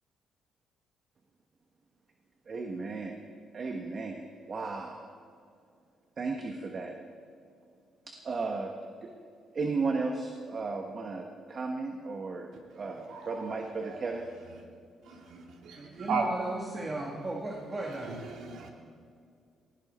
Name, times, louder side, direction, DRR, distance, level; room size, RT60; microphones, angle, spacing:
voice 1, 2.5-3.2 3.5-5.1 6.2-6.9 8.1-8.7 9.0-9.1 9.5-14.3, right 4 dB, 45° right, 3 dB, 1.4 m, -35 dB
voice 2, 15.1-16.2 18.3-18.7, right 6 dB, 75° right, 1 dB, 2.7 m, -35 dB
voice 3, 15.8-18.2, right 2 dB, 30° right, 0 dB, 2.0 m, -36 dB
19.0 x 16.5 x 4.4 m, 2.3 s
cardioid pair, 90°, 0 cm